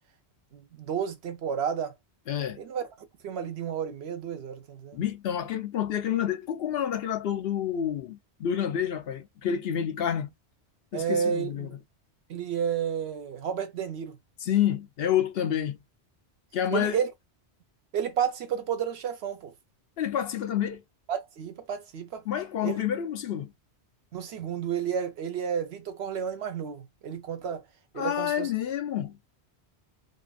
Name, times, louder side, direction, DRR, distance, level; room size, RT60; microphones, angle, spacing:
voice 1, 0.5-1.9 2.6-2.8 3.2-5.0 10.9-11.8 12.3-14.2 16.7-17.1 17.9-19.5 21.1-22.2 22.6-22.8 24.1-27.6 27.9-28.5, right 8 dB, 75° right, 0.9 m, -31 dB
voice 2, 2.3-2.6 4.9-10.3 10.9-11.7 14.4-15.8 16.5-17.0 20.0-20.8 22.3-23.5 28.0-29.2, left 10 dB, 65° left, 0.7 m, -28 dB
2.8 x 2.5 x 2.2 m
omnidirectional pair, 1.1 m